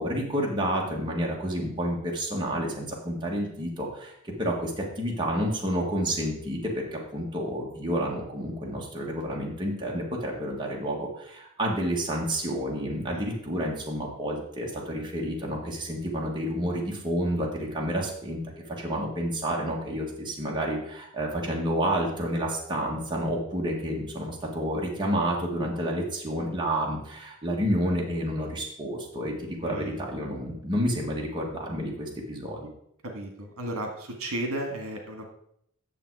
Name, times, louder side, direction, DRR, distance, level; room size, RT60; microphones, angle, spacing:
voice 1, 0.0-18.4 18.8-32.7, equal, 20° right, -2 dB, 1.6 m, -30 dB
voice 2, 29.6-30.0 33.1-35.3, right 1 dB, 70° right, 3 dB, 1.8 m, -34 dB
9.1 x 7.0 x 4.7 m, 0.72 s
head